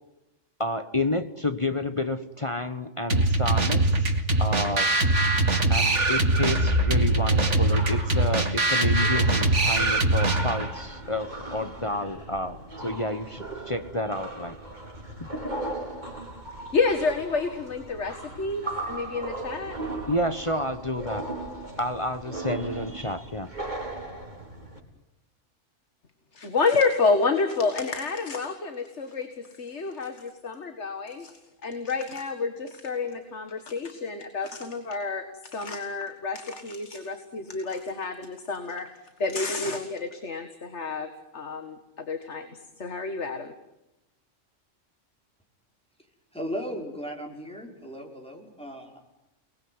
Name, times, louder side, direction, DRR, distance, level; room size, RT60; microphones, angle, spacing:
voice 1, 0.6-4.1 4.4-4.9 5.7-14.6 15.2-15.3 20.1-21.4 21.8-23.5, left 1 dB, 25° left, 1.1 m, -30 dB
sound 1, 3.1-10.7, right 2 dB, 65° right, 2.7 m, -22 dB
sound 2, 6.1-24.8, equal, 35° right, 4.5 m, -36 dB
voice 2, 16.7-19.8 26.3-38.9 39.2-42.5 42.8-43.5, left 4 dB, 65° left, 2.1 m, -29 dB
voice 3, 46.3-49.0, equal, 5° left, 5.4 m, -36 dB
29.5 x 20.5 x 9.7 m
omnidirectional pair, 1.3 m